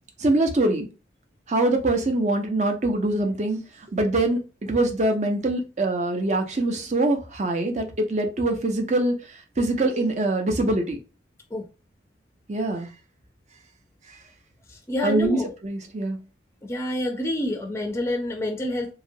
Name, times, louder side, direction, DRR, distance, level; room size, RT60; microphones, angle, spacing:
voice 1, 0.2-0.9 1.5-3.6 3.9-9.1 9.6-11.0 12.5-12.9 15.0-16.2, right 2 dB, 35° right, 0.6 m, -23 dB
voice 2, 14.9-15.5 16.6-18.9, left 1 dB, 15° left, 0.4 m, -27 dB
2.9 x 2.3 x 2.7 m
head